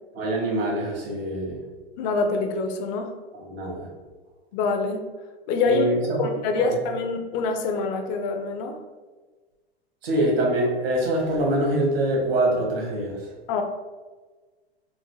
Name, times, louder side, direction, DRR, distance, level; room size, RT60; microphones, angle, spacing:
voice 1, 0.1-1.6 3.5-3.9 5.7-6.3 6.6-6.7 10.0-13.3, right 1 dB, 70° right, -2 dB, 1.3 m, -24 dB
voice 2, 2.0-3.1 4.5-5.1 5.5-5.8 6.2-8.8 13.5-13.6, left 4 dB, 45° left, 5 dB, 0.5 m, -25 dB
3.8 x 2.0 x 3.1 m, 1.3 s
hypercardioid pair, 105°, 31 cm